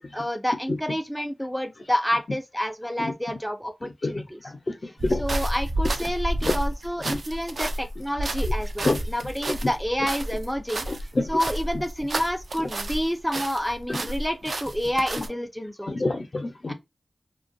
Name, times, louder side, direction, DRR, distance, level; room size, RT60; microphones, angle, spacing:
voice 1, 0.1-4.5 5.1-10.8 11.3-16.1 16.7-16.8, equal, ahead, 0.4 m, -29 dB
sound 1, 5.0-13.1 13.3-15.3, right 1 dB, 75° right, 0.3 m, -30 dB
voice 2, 10.9-11.3 13.9-14.0 15.9-16.7, left 2 dB, 55° left, 0.6 m, -26 dB
2.4 x 2.2 x 2.5 m
wide cardioid pair, 65°, 0 cm